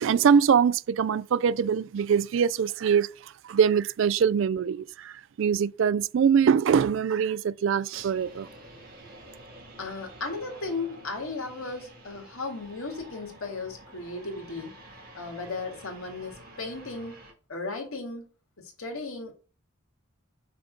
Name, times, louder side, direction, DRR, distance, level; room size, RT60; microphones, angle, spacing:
voice 1, 0.0-8.5, right 7 dB, 65° right, 0.3 m, -23 dB
sound 1, 7.9-17.3, right 1 dB, 45° right, 2.0 m, -49 dB
voice 2, 9.8-14.7 15.1-17.2 17.5-18.3 18.6-19.3, left 3 dB, 80° left, 2.0 m, -35 dB
5.8 x 3.7 x 5.1 m
head